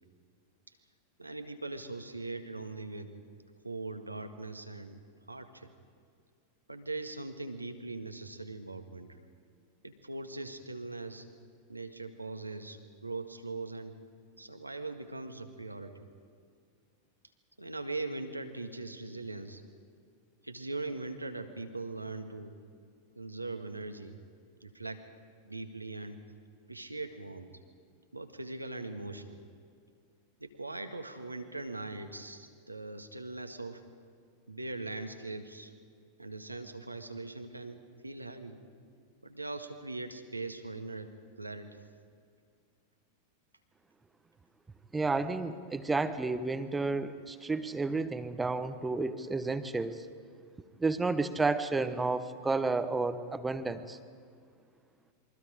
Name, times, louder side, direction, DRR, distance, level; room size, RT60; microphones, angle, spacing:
voice 1, 1.2-3.1 3.6-5.0 5.3-5.7 6.7-9.2 9.8-11.2 11.7-13.9 14.4-16.1 17.6-19.6 20.4-22.6 23.2-24.2 24.6-25.0 25.4-26.2 26.7-27.5 28.1-29.4 30.4-33.8 34.5-35.7 36.2-38.6 39.2-41.1 41.4-41.8, right 2 dB, 85° right, 6 dB, 1.7 m, -41 dB
voice 2, 44.9-50.0 50.8-54.0, right 3 dB, 10° right, 11 dB, 1.1 m, -31 dB
28.0 x 23.5 x 5.1 m, 2.2 s
figure-of-eight pair, 90°, 0 cm